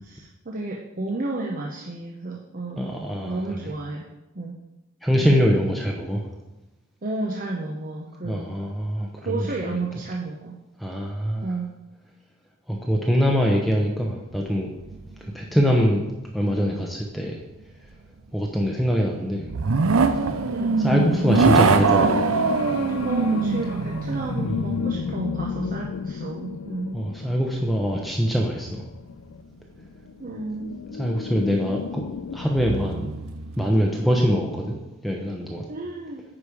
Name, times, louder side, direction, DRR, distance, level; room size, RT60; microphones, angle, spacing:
voice 1, 0.0-3.0 3.3-4.0 4.3-4.6 5.2-5.3 7.0-8.5 9.2-10.5 11.4-11.7 20.5-20.8 23.0-27.0 30.2-30.8 35.7-36.2, right 2 dB, 45° right, -1 dB, 0.9 m, -32 dB
voice 2, 2.8-3.6 5.0-6.2 8.2-9.8 10.8-11.5 12.7-14.7 15.2-16.0 16.3-17.4 18.3-19.5 20.8-22.3 24.4-24.5 26.9-28.8 31.0-32.0 32.3-33.1 33.6-34.8 35.0-35.7, equal, ahead, -1 dB, 0.8 m, -23 dB
sound 1, 14.6-15.3 15.7-15.8 19.4-25.9 30.8-30.9 32.4-33.7, right 4 dB, 90° right, 0.6 m, -23 dB
sound 2, 20.8-32.5, left 6 dB, 75° left, 0.4 m, -33 dB
9.8 x 5.2 x 4.9 m, 1.0 s
head